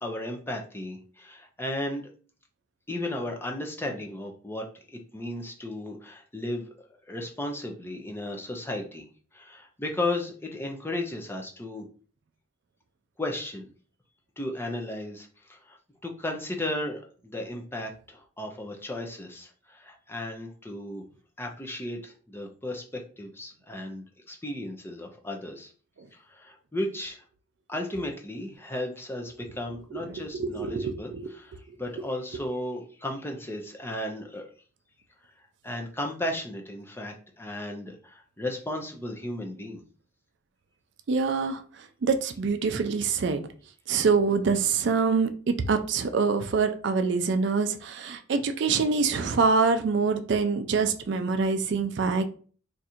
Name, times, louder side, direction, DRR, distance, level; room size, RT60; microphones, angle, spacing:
voice 1, 0.0-2.1 2.9-6.7 7.1-9.1 9.3-11.9 13.2-13.7 14.4-15.8 16.0-21.0 21.4-25.7 26.1-27.2 27.7-31.1 31.4-31.5 31.8-34.4 35.6-39.8, left 1 dB, 10° left, 2 dB, 0.4 m, -35 dB
voice 2, 29.9-31.3 31.7-31.8 41.1-43.5 43.9-52.3, right 4 dB, 55° right, 8 dB, 0.4 m, -25 dB
2.6 x 2.4 x 4.2 m, 0.40 s
head